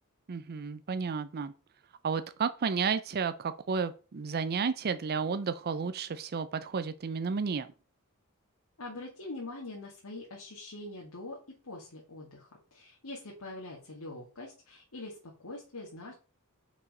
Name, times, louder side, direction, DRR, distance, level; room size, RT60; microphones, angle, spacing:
voice 1, 0.3-1.5 2.0-7.7, right 5 dB, 45° right, 0.5 m, -32 dB
voice 2, 8.8-11.4 11.6-16.2, left 2 dB, 85° left, 1.8 m, -44 dB
5.6 x 4.8 x 5.2 m
head